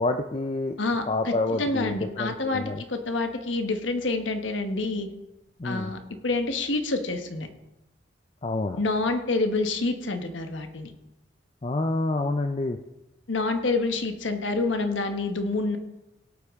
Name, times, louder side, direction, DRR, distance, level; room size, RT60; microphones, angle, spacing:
voice 1, 0.0-0.7 1.1-2.8 5.6-5.9 8.4-8.8 11.6-12.8, left 2 dB, 30° left, 6 dB, 0.5 m, -28 dB
voice 2, 0.8-5.1 5.6-7.5 8.8-10.9 13.3-15.8, left 3 dB, 80° left, 7 dB, 1.3 m, -27 dB
17.5 x 8.4 x 3.7 m, 0.98 s
head